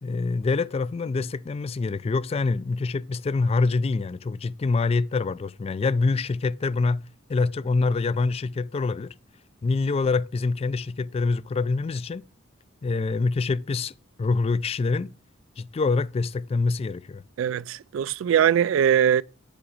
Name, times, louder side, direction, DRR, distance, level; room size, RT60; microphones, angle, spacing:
voice 1, 0.0-7.0 7.3-9.1 9.6-12.2 12.8-13.9 14.2-15.1 15.6-17.2, left 3 dB, 30° left, 0.3 m, -25 dB
voice 2, 17.4-19.2, right 9 dB, 75° right, 0.3 m, -21 dB
8.6 x 5.0 x 4.8 m
head